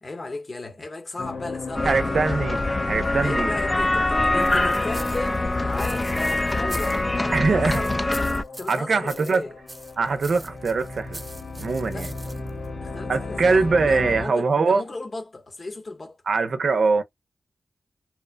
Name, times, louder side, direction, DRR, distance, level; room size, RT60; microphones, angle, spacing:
voice 1, 0.0-2.2 3.2-7.9 8.6-9.5 11.9-12.2 12.8-16.2, left 2 dB, 50° left, 0.9 m, -36 dB
sound 1, 1.2-14.2, left 3 dB, 75° left, 0.8 m, -36 dB
sound 2, 1.8-8.4, left 2 dB, 30° left, 0.3 m, -24 dB
voice 2, 1.8-3.5 7.3-7.8 8.7-9.4 10.0-11.2 11.6-12.1 13.1-14.8 16.3-17.0, right 4 dB, 75° right, 0.6 m, -22 dB
sound 3, 4.4-7.3 7.7-9.4 9.7-12.7, right 1 dB, 25° right, 0.5 m, -42 dB
3.0 x 2.1 x 2.2 m
cardioid pair, 50°, 0 cm